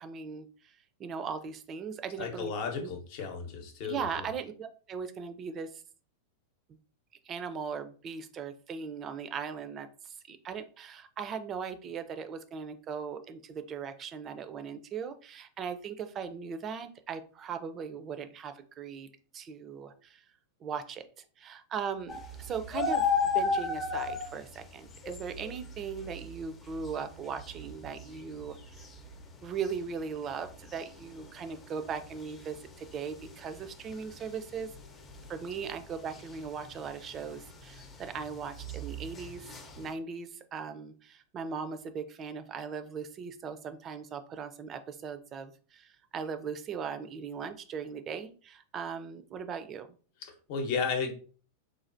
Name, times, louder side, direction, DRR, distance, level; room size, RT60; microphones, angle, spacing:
voice 1, 0.0-2.5 2.8-2.9 3.8-5.8 7.2-20.2 20.6-21.0 21.4-28.8 29.4-34.7 35.3-39.5 39.8-49.9, right 6 dB, 35° right, 9 dB, 0.4 m, -39 dB
voice 2, 2.2-4.2 50.2-51.1, left 5 dB, 55° left, 4 dB, 0.8 m, -34 dB
sound 1, 22.1-39.9, left 4 dB, 25° left, 0.6 m, -36 dB
3.2 x 2.3 x 2.5 m, 0.40 s
hypercardioid pair, 100°, 0 cm